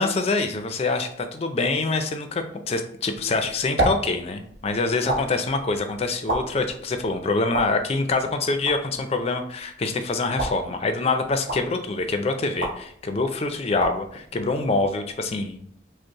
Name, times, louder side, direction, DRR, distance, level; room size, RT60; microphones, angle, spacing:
voice 1, 0.0-15.6, left 3 dB, 35° left, 7 dB, 0.4 m, -25 dB
sound 1, 3.1-15.3, right 1 dB, 80° right, 0.9 m, -33 dB
5.1 x 2.0 x 2.9 m, 0.65 s
head